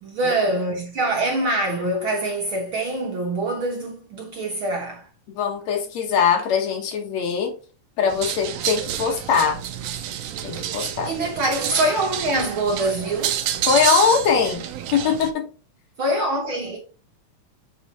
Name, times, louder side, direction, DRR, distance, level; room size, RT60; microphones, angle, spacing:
voice 1, 0.0-5.1 11.0-13.5 16.0-16.8, right 1 dB, 55° right, 1.5 m, -24 dB
voice 2, 5.3-7.5 8.0-9.6 10.4-11.1 13.7-14.6 14.9-15.4, left 6 dB, 65° left, 2.4 m, -21 dB
sound 1, 8.1-15.3, right 10 dB, 75° right, 1.6 m, -28 dB
8.0 x 3.9 x 4.1 m
omnidirectional pair, 3.4 m